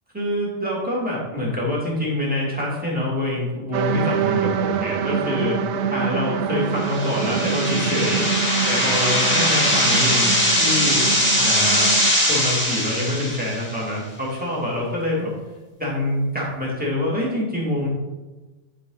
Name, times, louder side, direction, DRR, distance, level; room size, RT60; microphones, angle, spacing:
voice 1, 0.1-5.6 5.9-8.3 8.6-11.9 12.2-15.3 15.8-17.9, left 1 dB, 5° right, -5 dB, 2.6 m, -25 dB
sound 1, 3.7-12.1, right 7 dB, 70° right, 0.9 m, -26 dB
sound 2, 6.8-13.8, equal, 10° left, 2.2 m, -21 dB
11.0 x 5.3 x 4.0 m, 1.2 s
omnidirectional pair, 1.2 m